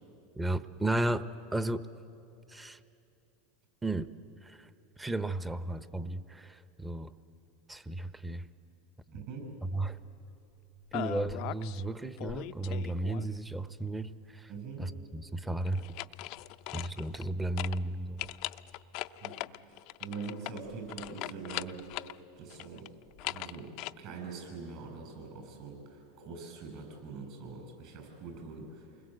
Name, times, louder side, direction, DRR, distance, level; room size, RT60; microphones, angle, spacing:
voice 1, 0.4-1.9 2.5-2.8 3.8-4.1 4.4-4.7 5.0-7.1 7.7-8.5 9.7-10.0 10.9-14.5 14.8-15.9 16.7-18.3, right 2 dB, 10° right, 13 dB, 0.8 m, -34 dB
voice 2, 9.1-9.5 14.5-14.9 19.2-22.0 22.4-22.9 23.2-29.0, right 4 dB, 55° right, 3 dB, 7.9 m, -44 dB
sound 1, 10.9-11.8 12.2-13.5 15.7-17.3 17.6-17.8 18.2-22.2 22.5-23.9, left 18 dB, 55° left, 0.5 m, -40 dB
28.0 x 21.0 x 7.9 m, 2.8 s
hypercardioid pair, 110°, 0 cm